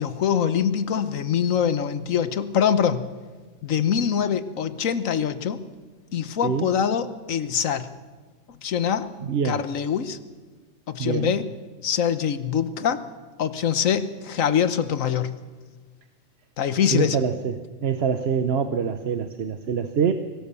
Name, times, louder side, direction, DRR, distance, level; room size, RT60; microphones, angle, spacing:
voice 1, 0.0-3.1 3.6-5.6 6.1-7.9 8.6-9.1 9.4-10.2 10.9-11.5 11.8-13.0 13.4-15.3 16.6-17.2, left 8 dB, 75° left, 12 dB, 1.4 m, -24 dB
voice 2, 9.2-9.6 11.0-11.3 16.9-17.5 17.8-20.1, right 7 dB, 55° right, 9 dB, 1.1 m, -25 dB
24.0 x 18.0 x 6.9 m, 1.4 s
omnidirectional pair, 1.4 m